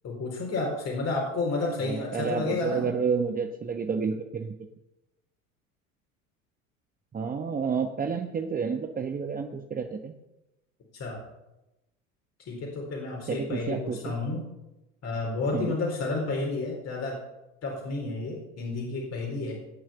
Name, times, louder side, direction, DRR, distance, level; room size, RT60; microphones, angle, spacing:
voice 1, 0.0-2.9 10.9-11.2 12.5-14.5 15.0-17.2 17.6-19.5, left 3 dB, 40° left, -1 dB, 4.1 m, -31 dB
voice 2, 1.8-4.6 7.1-10.1 13.3-14.1 15.5-15.8, right 5 dB, 20° right, 5 dB, 1.1 m, -30 dB
18.5 x 6.3 x 6.9 m, 0.96 s
hypercardioid pair, 80°, 40 cm